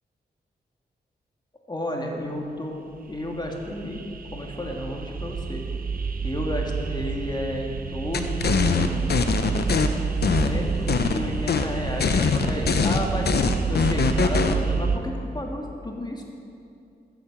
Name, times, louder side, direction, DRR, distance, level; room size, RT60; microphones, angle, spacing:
voice 1, 1.7-2.7 3.1-4.0 4.3-5.6 6.2-9.0 10.3-13.3 13.7-16.2, left 1 dB, 25° left, 0 dB, 2.2 m, -32 dB
sound 1, 3.0-15.0, right 5 dB, 55° right, 0.8 m, -29 dB
sound 2, 8.1-9.9 10.2-11.2 11.5-11.7 12.0-14.6, left 5 dB, 70° left, 0.8 m, -22 dB
15.0 x 7.8 x 7.3 m, 2.5 s
cardioid pair, 65°, 17 cm